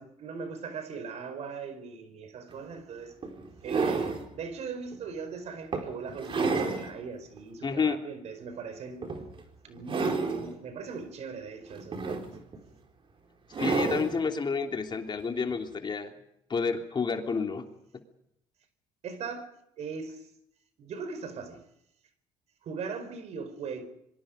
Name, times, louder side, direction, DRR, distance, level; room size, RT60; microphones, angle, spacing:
voice 1, 0.0-3.1 3.6-9.0 9.6-12.3 19.0-19.5 19.8-20.3 20.8-21.6 22.6-23.8, right 5 dB, 60° right, 4.8 m, -39 dB
sound 1, 2.5-2.6 3.2-4.3 4.9-5.1 5.7-6.9 7.4-7.5 9.0-9.4 9.8-10.5 11.7-12.6 13.5-14.2 15.5-15.6, right 4 dB, 45° right, 4.7 m, -30 dB
voice 2, 7.6-8.0 13.6-16.1 16.5-17.6, left 5 dB, 35° left, 3.2 m, -29 dB
26.5 x 23.5 x 5.2 m
supercardioid pair, 75°, 13 cm